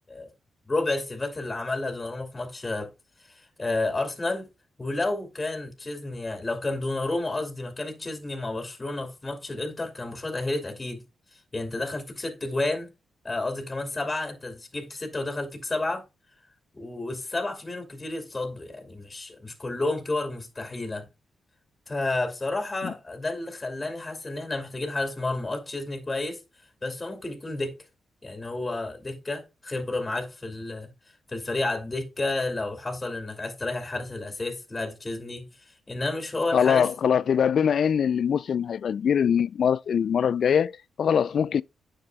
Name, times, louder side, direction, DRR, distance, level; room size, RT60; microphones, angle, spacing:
voice 1, 0.7-2.9 3.2-4.5 4.8-11.0 11.3-12.9 13.2-16.0 16.7-21.1 21.9-26.4 26.8-27.7 28.2-30.9 31.3-36.9, left 2 dB, 25° left, 2.5 m, -31 dB
voice 2, 36.5-41.6, left 7 dB, 65° left, 0.4 m, -23 dB
9.8 x 6.6 x 2.3 m
supercardioid pair, 50°, 0 cm